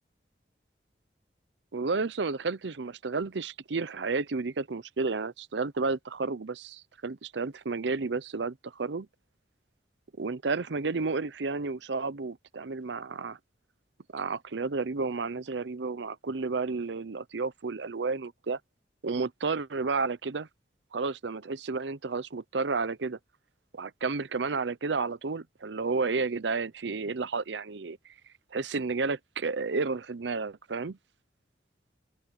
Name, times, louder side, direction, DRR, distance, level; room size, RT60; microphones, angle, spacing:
voice 1, 1.7-9.1 10.2-13.4 14.1-18.6 19.0-20.5 20.9-23.2 23.7-28.1 28.5-31.0, right 4 dB, 85° right, 0.7 m, -31 dB
open air
head